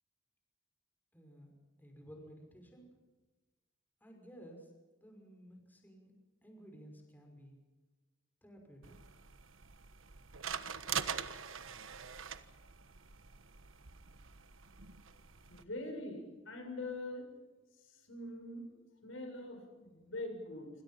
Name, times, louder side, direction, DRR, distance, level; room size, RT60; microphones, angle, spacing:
voice 1, 1.1-1.5 1.8-2.9 4.0-4.7 5.0-6.1 6.4-7.6 8.4-9.0, equal, 10° left, 2 dB, 5.7 m, -55 dB
sound 1, 8.8-15.6, right 7 dB, 80° right, 1.3 m, -44 dB
voice 2, 15.5-17.3 17.9-18.6 19.0-20.7, left 2 dB, 75° left, 4 dB, 7.0 m, -43 dB
27.0 x 27.0 x 5.8 m, 1.2 s
head